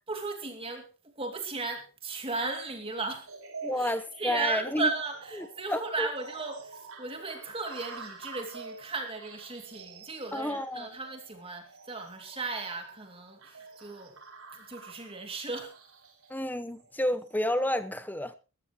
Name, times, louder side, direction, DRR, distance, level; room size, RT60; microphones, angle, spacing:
voice 1, 0.1-0.9 1.2-3.3 3.8-14.2 14.5-15.8, right 3 dB, 25° right, 4 dB, 2.6 m, -36 dB
sound 1, 3.3-17.5, right 4 dB, 80° right, 4.6 m, -48 dB
voice 2, 3.6-4.9 5.4-6.1 10.3-10.9 16.3-18.3, left 1 dB, 10° left, 11 dB, 1.0 m, -30 dB
20.5 x 13.0 x 3.1 m, 0.33 s
head